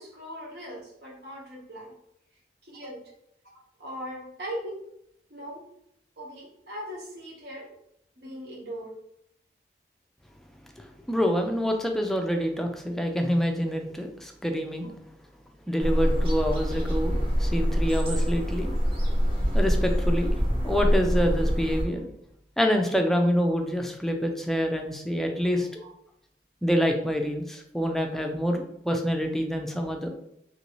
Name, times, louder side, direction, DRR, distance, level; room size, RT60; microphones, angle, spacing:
voice 1, 0.0-1.9 2.6-3.0 3.8-4.8 5.3-5.6 6.2-7.7 8.2-8.9 25.4-25.5 25.8-25.9, equal, 65° right, -4 dB, 1.2 m, -39 dB
voice 2, 11.1-14.9 15.7-18.7 19.5-20.3 20.6-22.0 22.6-25.7 26.6-30.1, equal, ahead, 3 dB, 0.3 m, -26 dB
sound 1, 15.8-21.8, equal, 30° right, 0.8 m, -25 dB
3.0 x 2.6 x 3.0 m, 0.75 s
head